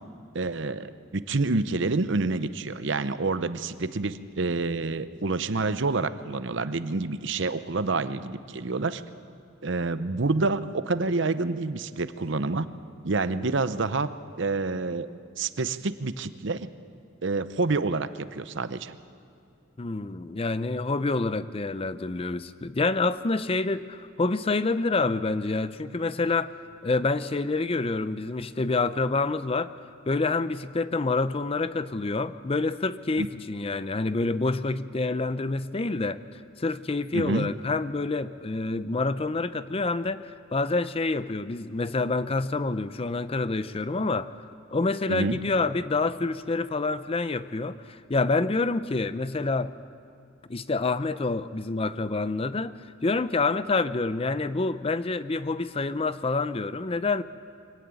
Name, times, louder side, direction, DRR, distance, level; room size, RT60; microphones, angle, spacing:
voice 1, 0.3-9.0 9.6-12.7 13.0-14.1 14.4-15.1 15.4-16.7 17.2-19.0 33.2-33.3 37.1-37.5 45.1-45.4, right 3 dB, 60° right, 12 dB, 0.8 m, -28 dB
voice 2, 19.8-26.5 26.8-29.7 30.1-36.2 36.6-44.3 44.7-49.7 50.5-57.2, left 3 dB, 30° left, 13 dB, 0.5 m, -27 dB
23.5 x 16.5 x 9.0 m, 2.5 s
head